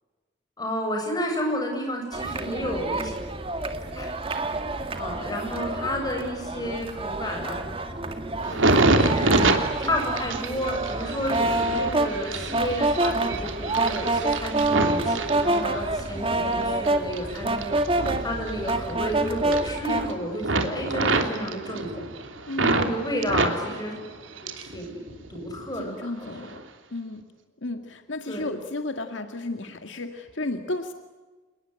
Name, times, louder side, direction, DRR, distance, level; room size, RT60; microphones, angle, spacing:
voice 1, 0.6-3.1 3.9-4.1 5.0-7.7 8.5-9.4 9.8-17.7 18.2-22.1 22.6-23.9 24.6-26.5 28.3-28.5, equal, 20° left, 2 dB, 7.9 m, -31 dB
sound 1, 2.1-20.1, right 2 dB, 30° right, 2.0 m, -27 dB
sound 2, 8.4-16.1 16.5-19.1 19.4-20.1 20.4-22.9 23.2-24.8 25.1-25.8 26.4-26.6, right 2 dB, 85° right, 3.1 m, -26 dB
voice 2, 22.4-22.9 25.7-26.6 26.9-27.2 27.6-30.9, left 2 dB, 75° left, 6 dB, 2.0 m, -33 dB
28.5 x 21.0 x 9.7 m, 1.3 s
head